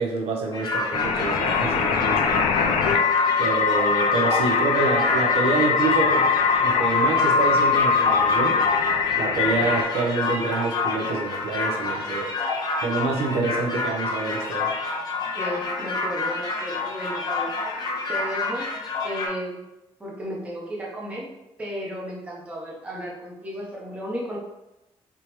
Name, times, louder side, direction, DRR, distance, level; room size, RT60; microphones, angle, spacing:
voice 1, 0.0-2.2 3.4-6.3 6.6-8.6 9.2-12.3 12.8-14.7, right 3 dB, 80° right, 0 dB, 0.8 m, -26 dB
sound 1, 0.5-19.3, left 3 dB, 40° left, 0.6 m, -28 dB
sound 2, 0.9-9.8, left 5 dB, 85° left, 0.4 m, -22 dB
voice 2, 15.3-17.5 18.1-18.7 19.0-19.6 20.0-21.3 21.6-24.4, equal, 10° right, -4 dB, 0.7 m, -33 dB
3.3 x 3.0 x 3.0 m, 0.95 s
cardioid pair, 175°, 10 cm